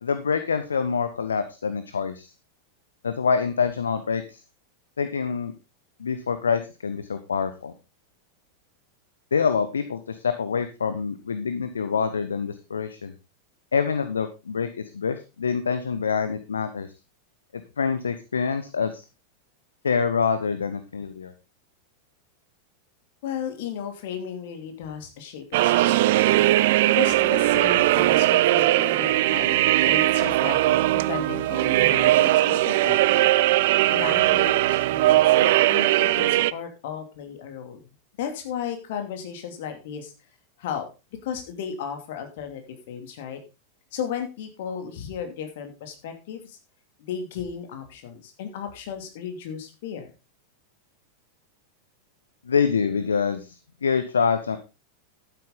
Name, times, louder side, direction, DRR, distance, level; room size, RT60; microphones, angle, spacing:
voice 1, 0.0-2.3 3.0-4.4 5.0-5.5 6.0-7.7 9.3-13.1 13.7-14.7 14.9-16.9 17.5-19.0 19.8-21.3 52.5-54.6, left 6 dB, 70° left, 10 dB, 0.9 m, -26 dB
voice 2, 23.2-26.5 26.9-33.2 33.9-37.8 38.2-40.1 40.6-40.8 41.2-43.4 43.9-46.6 47.0-50.1, left 8 dB, 55° left, 6 dB, 2.7 m, -35 dB
sound 1, 25.5-36.5, right 16 dB, 50° right, 0.5 m, -20 dB
12.0 x 9.3 x 3.9 m, 0.28 s
figure-of-eight pair, 90°, 0 cm